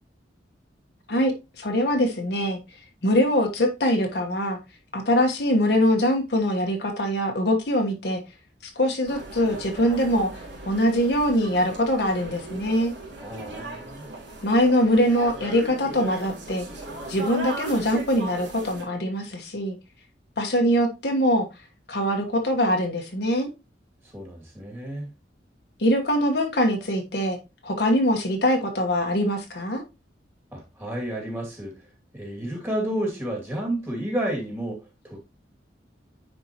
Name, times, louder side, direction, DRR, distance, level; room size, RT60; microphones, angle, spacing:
voice 1, 1.1-2.6 3.0-4.6 4.9-8.2 8.7-10.3 10.7-12.9 14.4-16.7 17.1-19.8 20.4-21.5 21.9-23.5 25.8-27.4 27.6-29.8, equal, 60° left, 1.3 m, -23 dB
sound 1, 9.0-18.8, right 2 dB, 70° right, 3.2 m, -37 dB
voice 2, 13.2-14.1 24.1-25.1 30.5-31.8 32.1-35.2, right 1 dB, 15° right, 2.3 m, -31 dB
9.8 x 4.6 x 2.9 m
head